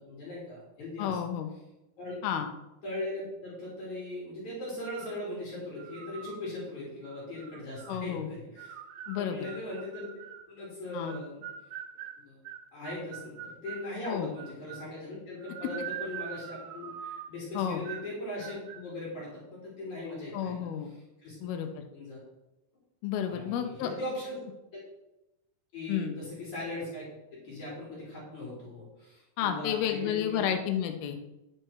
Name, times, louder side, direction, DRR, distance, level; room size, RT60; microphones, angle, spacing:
voice 1, 0.0-1.2 2.0-2.1 2.8-8.8 9.1-10.1 10.5-11.4 12.2-12.4 12.7-21.4 21.9-22.2 23.2-24.4 25.7-27.0 27.3-30.5, left 1 dB, 40° left, -6 dB, 4.5 m, -39 dB
voice 2, 1.0-1.5 2.2-2.5 7.9-8.3 9.1-9.5 10.9-11.2 14.1-14.3 17.5-17.8 20.3-20.9 21.4-21.7 23.0-23.9 25.9-26.2 29.4-31.2, left 9 dB, 85° left, 6 dB, 2.2 m, -31 dB
sound 1, 4.8-5.2 5.8-6.4 7.0-8.0 8.6-10.5 11.1-13.9 14.4-15.0 15.4-17.4 17.9-18.1 18.4-18.8, right 9 dB, 85° right, 3.2 m, -43 dB
11.0 x 7.8 x 4.7 m, 0.96 s
omnidirectional pair, 5.3 m